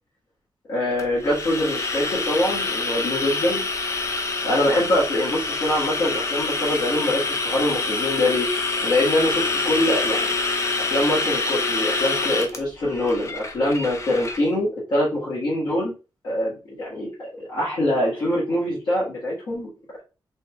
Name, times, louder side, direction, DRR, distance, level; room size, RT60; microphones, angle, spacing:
voice 1, 0.7-3.6 4.4-8.5 8.8-10.3 10.8-15.9 16.2-19.7, left 1 dB, 65° left, -8 dB, 2.1 m, -24 dB
sound 1, 1.0-14.4, left 3 dB, 35° left, 0.7 m, -26 dB
4.3 x 3.3 x 3.5 m, 0.32 s
wide cardioid pair, 165°, 8 cm